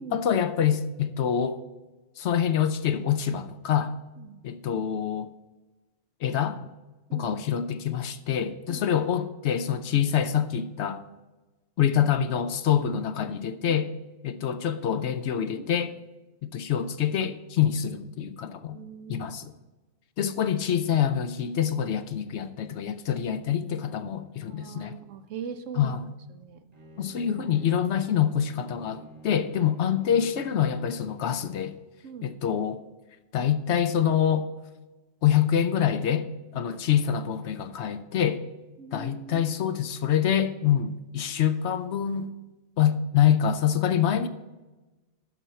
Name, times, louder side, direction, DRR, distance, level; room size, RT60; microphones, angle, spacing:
voice 1, 0.1-1.6 2.2-3.9 4.4-5.3 6.2-6.6 7.1-11.0 11.8-13.9 14.2-16.0 16.4-18.8 19.1-19.5 20.2-25.0 25.8-26.0 27.0-31.7 32.2-32.8 33.3-34.5 35.2-38.4 38.9-42.3 42.8-44.3, left 9 dB, 65° left, 0.8 m, -26 dB
voice 2, 18.7-19.4 24.5-26.0 26.3-26.6 32.0-32.4 36.6-36.7 38.8-39.4, right 6 dB, 75° right, 1.0 m, -41 dB
Bowed string instrument, 26.7-31.5, equal, 30° right, 1.2 m, -49 dB
11.5 x 4.4 x 6.8 m
omnidirectional pair, 1.3 m